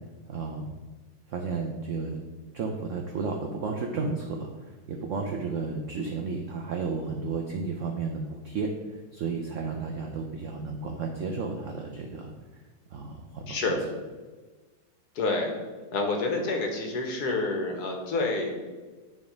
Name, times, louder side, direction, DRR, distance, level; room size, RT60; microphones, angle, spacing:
voice 1, 0.3-0.7 1.3-2.2 2.5-12.3 12.9-13.6, right 4 dB, 65° right, 2 dB, 0.7 m, -33 dB
voice 2, 13.5-13.8 15.1-15.5 15.9-18.5, left 3 dB, 60° left, 2 dB, 1.6 m, -28 dB
9.5 x 3.6 x 5.1 m, 1.3 s
omnidirectional pair, 2.0 m